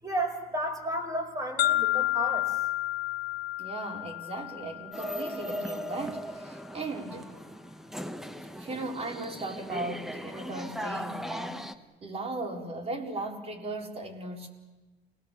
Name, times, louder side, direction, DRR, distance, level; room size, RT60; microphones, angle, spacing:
voice 1, 0.0-2.7, right 1 dB, 20° right, 5 dB, 5.0 m, -33 dB
sound 1, 1.6-5.6, left 15 dB, 70° left, 0.9 m, -30 dB
voice 2, 3.6-7.3 8.4-11.6 12.0-14.5, right 2 dB, 35° right, 1 dB, 4.4 m, -37 dB
sound 2, 4.9-11.7, equal, ahead, 1.1 m, -38 dB
29.5 x 19.5 x 7.2 m, 1.2 s
cardioid pair, 110°, 17 cm